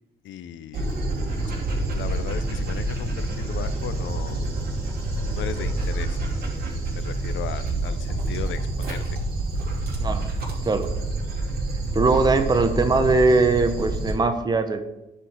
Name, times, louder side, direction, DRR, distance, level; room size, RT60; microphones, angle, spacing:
voice 1, 0.2-0.9 1.8-4.4 5.4-6.2 6.9-9.2, left 9 dB, 70° left, 14 dB, 0.6 m, -36 dB
Dog, 0.7-14.1, right 2 dB, 50° right, 2.9 m, -27 dB
voice 2, 11.9-14.8, right 3 dB, 20° right, 8 dB, 0.8 m, -20 dB
10.0 x 4.4 x 4.8 m, 0.98 s
cardioid pair, 90°, 20 cm